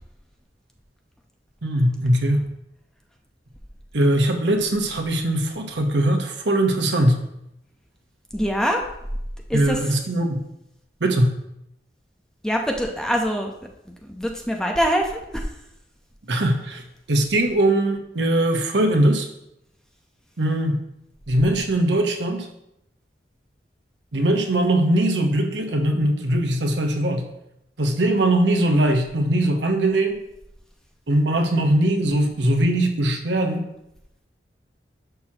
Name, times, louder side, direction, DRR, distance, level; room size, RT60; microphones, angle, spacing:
voice 1, 1.6-2.4 3.9-7.2 9.5-10.4 11.0-11.4 16.3-19.3 20.4-20.8 21.3-22.5 24.1-27.3 27.8-30.2 31.1-33.6, right 1 dB, 90° right, 4 dB, 1.1 m, -21 dB
voice 2, 8.3-8.8 9.5-9.8 12.4-13.5 14.0-15.5, equal, 5° left, 1 dB, 0.8 m, -24 dB
10.5 x 6.1 x 3.0 m, 0.82 s
head